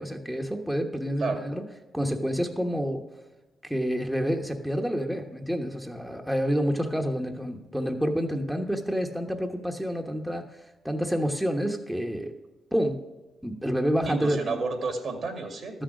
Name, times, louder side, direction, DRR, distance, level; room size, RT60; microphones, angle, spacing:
voice 1, 0.0-1.6 1.9-3.0 3.6-12.3 12.7-13.0 13.4-14.5, equal, 5° right, 3 dB, 1.2 m, -28 dB
voice 2, 14.1-15.8, right 3 dB, 60° right, 6 dB, 2.2 m, -31 dB
13.0 x 6.4 x 6.1 m, 1.1 s
supercardioid pair, 60°, 0 cm